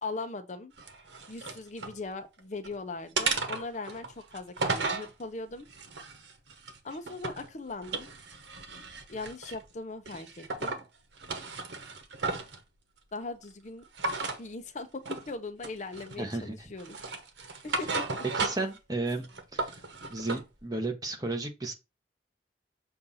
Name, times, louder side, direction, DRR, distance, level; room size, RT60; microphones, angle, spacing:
voice 1, 0.0-0.7 1.3-5.7 6.8-8.1 9.1-10.8 13.1-13.8 14.4-17.0 17.6-18.2, left 3 dB, 40° left, 0.7 m, -39 dB
sound 1, 0.8-2.0 2.4-2.7 3.2-5.1 5.7-7.5 7.8-9.6 10.1-10.8 11.2-12.6 14.0-14.4 15.1-15.3 15.6-16.3 16.8-18.8 19.1-20.4, right 3 dB, 85° right, 1.0 m, -34 dB
voice 2, 16.2-16.7 18.4-19.8 20.1-21.7, right 2 dB, 20° right, 1.1 m, -34 dB
6.7 x 2.6 x 5.5 m
head